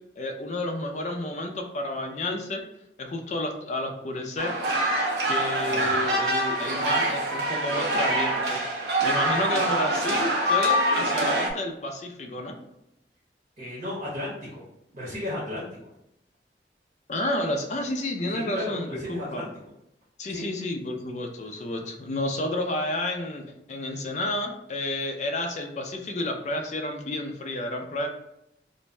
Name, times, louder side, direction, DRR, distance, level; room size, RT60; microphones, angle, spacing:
voice 1, 0.2-2.6 3.0-4.5 5.3-8.6 9.0-12.5 17.1-19.4 20.2-28.1, left 1 dB, 40° left, 3 dB, 0.4 m, -31 dB
sound 1, 4.4-11.5, right 1 dB, 75° right, 0.6 m, -25 dB
voice 2, 13.6-14.6 14.9-15.6 18.3-19.5 20.3-20.5, left 1 dB, 45° right, -6 dB, 0.8 m, -34 dB
2.5 x 2.1 x 3.1 m, 0.83 s
head